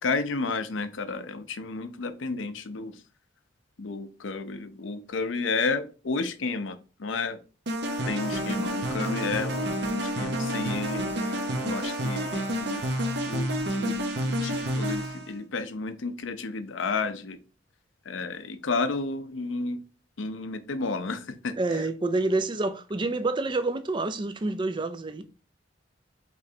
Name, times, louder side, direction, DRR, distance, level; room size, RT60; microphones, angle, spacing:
voice 1, 0.0-3.0 3.8-7.4 8.1-12.8 13.2-13.5 13.7-14.0 14.3-17.4 18.1-19.8 20.2-21.5, left 4 dB, 80° left, 0.6 m, -32 dB
sound 1, 7.7-15.3, equal, 60° right, 0.9 m, -29 dB
voice 2, 21.6-25.3, right 2 dB, 25° right, 0.4 m, -28 dB
5.1 x 3.2 x 2.7 m
head